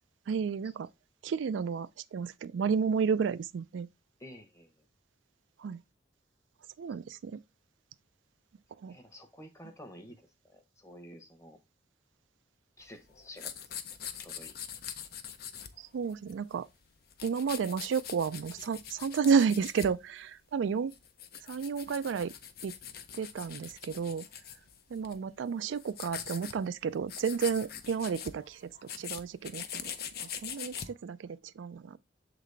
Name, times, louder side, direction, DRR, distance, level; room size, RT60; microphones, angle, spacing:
voice 1, 0.3-0.9 1.2-3.9 5.6-5.8 6.8-7.4 8.8-8.9 15.8-16.7 17.2-20.9 21.4-22.3 22.6-22.7 23.1-24.3 24.9-28.7 29.0-29.9 30.2-32.0, right 6 dB, 85° right, 0.3 m, -31 dB
voice 2, 4.2-4.7 8.9-11.6 12.8-13.7 14.2-14.6, equal, 15° left, 1.0 m, -51 dB
sound 1, 12.8-16.5 16.8-20.0 20.6-25.2 25.6-26.6 26.8-26.9 27.1-30.9, left 9 dB, 55° left, 0.6 m, -43 dB
7.3 x 3.9 x 3.3 m
head